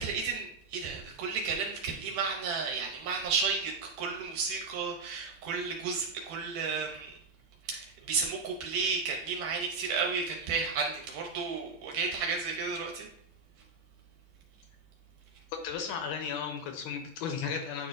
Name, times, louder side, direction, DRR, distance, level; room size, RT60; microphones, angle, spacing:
voice 1, 0.0-7.1 7.7-13.1, right 5 dB, 75° right, 1 dB, 2.1 m, -32 dB
voice 2, 15.6-17.9, left 6 dB, 80° left, 4 dB, 2.0 m, -35 dB
9.3 x 4.3 x 2.5 m, 0.71 s
omnidirectional pair, 4.0 m